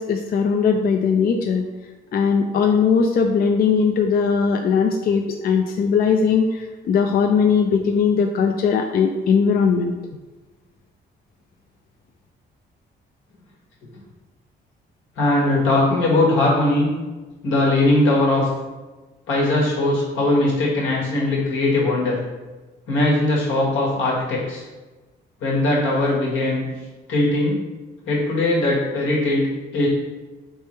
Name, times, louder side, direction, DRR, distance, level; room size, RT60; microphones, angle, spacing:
voice 1, 0.0-1.6 2.1-9.9, left 6 dB, 50° left, 4 dB, 0.4 m, -19 dB
voice 2, 15.2-16.9 17.4-18.5 19.3-22.2 22.9-24.6 25.4-26.6 27.1-27.6 28.1-29.5 29.7-29.9, left 2 dB, 85° left, -4 dB, 1.4 m, -20 dB
3.3 x 3.2 x 4.3 m, 1.2 s
cardioid pair, 90°, 20 cm